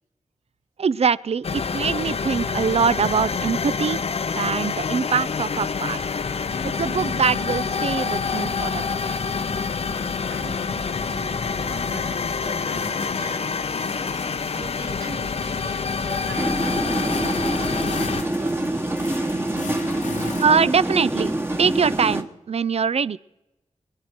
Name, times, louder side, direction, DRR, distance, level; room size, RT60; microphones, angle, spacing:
voice 1, 0.8-4.0 4.3-6.0 6.6-9.2 20.4-23.2, right 6 dB, 55° right, 20 dB, 0.4 m, -23 dB
sound 1, 1.4-18.2, left 5 dB, 55° left, 0.5 m, -27 dB
sound 2, 5.5-20.5, left 4 dB, 85° left, 1.2 m, -37 dB
voice 2, 10.3-18.0 18.3-19.4, right 3 dB, 85° right, -5 dB, 3.2 m, -42 dB
sound 3, 16.4-22.2, right 1 dB, 20° right, 1.2 m, -25 dB
24.0 x 10.0 x 4.5 m, 0.95 s
wide cardioid pair, 110°, 12 cm